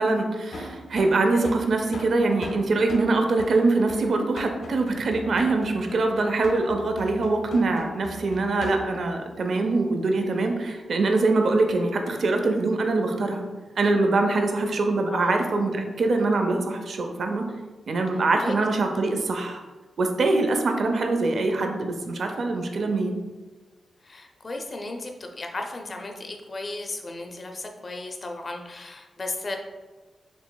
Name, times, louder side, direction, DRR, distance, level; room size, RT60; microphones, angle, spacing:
voice 1, 0.0-13.5 13.8-17.5 17.9-19.6 20.0-23.2, right 3 dB, 50° right, 4 dB, 0.4 m, -23 dB
sound 1, 0.5-9.1, left 1 dB, 70° left, 0.8 m, -40 dB
voice 2, 24.0-29.6, left 2 dB, 30° left, 3 dB, 0.5 m, -35 dB
6.9 x 3.0 x 2.2 m, 1.3 s
wide cardioid pair, 165°, 0 cm